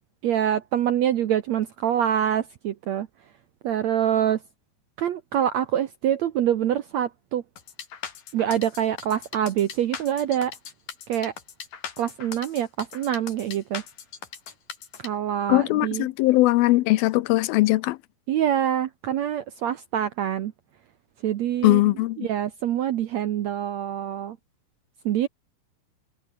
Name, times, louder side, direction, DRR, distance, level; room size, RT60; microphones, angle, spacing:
voice 1, 0.2-3.1 3.6-4.4 5.0-7.4 8.3-10.5 11.1-11.3 12.0-13.8 15.0-16.1 18.3-20.5 21.2-21.8 22.2-24.4 25.0-25.3, right 10 dB, 70° right, 1.7 m, -25 dB
sound 1, 7.6-15.1, left 7 dB, 60° left, 4.4 m, -39 dB
voice 2, 15.5-18.0 21.6-22.3, left 19 dB, 80° left, 2.5 m, -20 dB
omnidirectional pair, 4.3 m